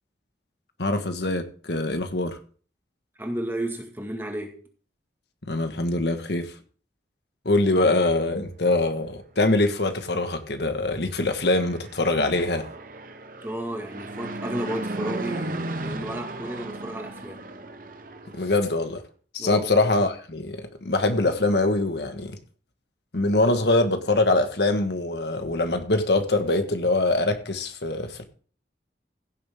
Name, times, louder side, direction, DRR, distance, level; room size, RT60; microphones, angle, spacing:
voice 1, 0.8-2.4 5.4-6.5 7.4-12.7 18.3-19.0 19.3-22.4 23.1-28.3, left 2 dB, 75° left, 1.5 m, -23 dB
voice 2, 3.2-4.6 13.4-17.5 19.4-19.7, right 1 dB, 15° right, 2.0 m, -33 dB
Fixed-wing aircraft airplane, 11.3-18.7, right 2 dB, 50° right, 1.1 m, -35 dB
16.0 x 7.2 x 3.7 m
head